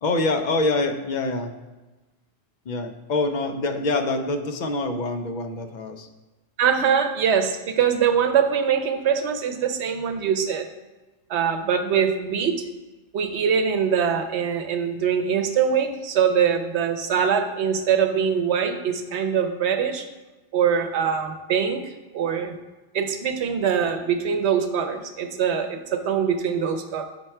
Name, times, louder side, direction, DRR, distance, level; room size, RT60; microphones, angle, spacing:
voice 1, 0.0-1.5 2.7-6.1, left 2 dB, 55° left, 6 dB, 0.6 m, -25 dB
voice 2, 6.6-10.7 11.3-12.6 13.1-20.1 20.5-21.8 22.1-22.5 22.9-27.1, right 7 dB, 90° right, 6 dB, 0.9 m, -23 dB
5.8 x 4.6 x 4.3 m, 1.2 s
omnidirectional pair, 1.1 m